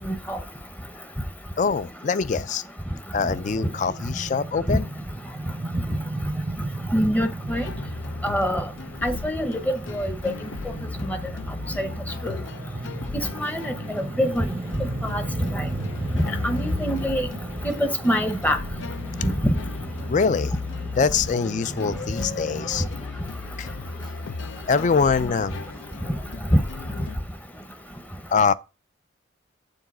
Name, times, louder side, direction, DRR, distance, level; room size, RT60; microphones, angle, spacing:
voice 1, 0.1-0.4 4.7-4.8 6.9-7.6 8.2-8.6 9.0-10.1 11.1-11.2 11.8-11.9 12.2-12.4 13.1-14.5 15.1-15.2 15.5-15.6 16.1-17.3 17.6-18.6 19.2-19.6, equal, 10° left, 0.7 m, -25 dB
voice 2, 1.6-2.6 3.1-4.9 11.6-11.7 20.1-20.5 21.0-22.9 23.6-23.7 24.7-25.6 28.3-28.5, left 5 dB, 40° left, 0.4 m, -23 dB
sound 1, 3.1-22.7, right 2 dB, 30° right, 0.5 m, -35 dB
sound 2, 7.5-27.2, left 4 dB, 90° left, 0.6 m, -36 dB
7.1 x 3.9 x 6.0 m
head